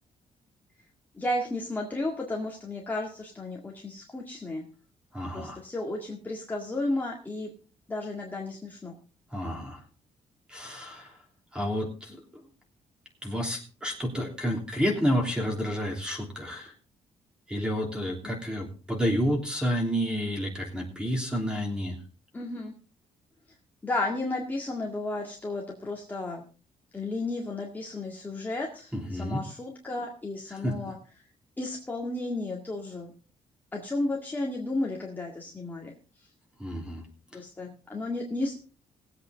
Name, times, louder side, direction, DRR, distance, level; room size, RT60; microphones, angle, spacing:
voice 1, 1.2-4.6 5.3-7.5 7.9-9.0 22.3-22.7 23.8-26.4 26.9-31.0 31.6-33.1 33.7-35.9 37.3-38.6, left 2 dB, 15° left, -2 dB, 1.9 m, -33 dB
voice 2, 5.1-5.6 9.3-9.8 10.5-11.1 11.5-12.2 13.2-16.7 17.5-22.0 28.9-29.4 30.6-30.7 36.6-37.0, equal, 5° right, 2 dB, 3.2 m, -30 dB
19.5 x 8.2 x 3.9 m, 0.35 s
cardioid pair, 155°, 13 cm